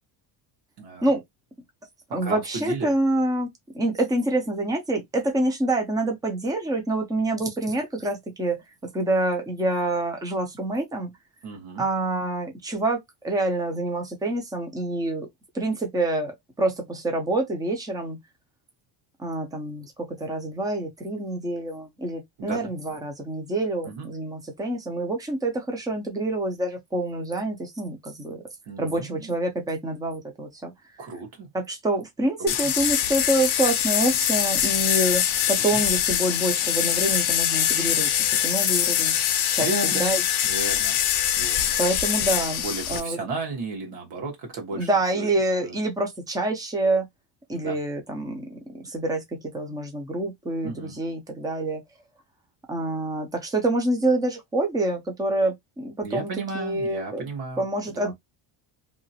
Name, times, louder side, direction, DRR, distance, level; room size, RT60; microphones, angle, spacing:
voice 1, 0.8-1.1 2.2-2.9 11.4-11.8 22.4-22.7 23.9-24.1 28.7-29.3 31.0-31.5 32.4-32.5 35.6-35.8 39.6-40.1 40.4-41.0 41.4-41.8 42.6-45.3 45.6-45.7 47.5-47.8 50.6-51.0 56.0-58.1, right 3 dB, 55° right, 1.4 m, -34 dB
voice 2, 2.1-3.5 3.7-11.1 11.8-15.3 15.5-18.2 19.2-28.4 28.8-30.7 31.5-38.1 38.4-39.1 39.5-40.2 41.8-42.6 42.9-43.3 44.7-47.1 47.5-51.8 52.7-57.3 57.6-58.1, right 2 dB, 10° right, 0.5 m, -27 dB
sound 1, 32.5-43.0, left 10 dB, 50° left, 0.6 m, -23 dB
2.9 x 2.5 x 2.7 m
cardioid pair, 170°, 48 cm